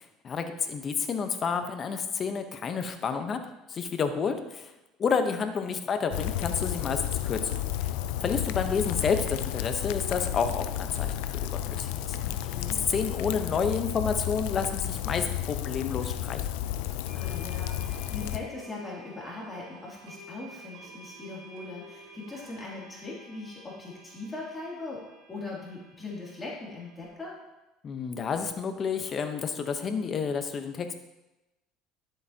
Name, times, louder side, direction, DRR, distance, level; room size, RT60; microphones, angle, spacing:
voice 1, 0.0-3.4 3.7-4.7 5.0-7.4 7.8-7.9 8.2-12.2 12.9-16.4 27.8-30.9, left 5 dB, 35° left, 7 dB, 1.0 m, -30 dB
Rain, 6.1-18.4, left 12 dB, 85° left, 0.5 m, -32 dB
voice 2, 12.2-12.8 17.1-25.0 25.3-27.3, left 3 dB, 20° left, -5 dB, 2.8 m, -40 dB
sound 1, 16.0-16.1 17.1-27.1, right 1 dB, 85° right, 2.3 m, -51 dB
11.5 x 7.9 x 2.9 m, 0.99 s
supercardioid pair, 110°, 0 cm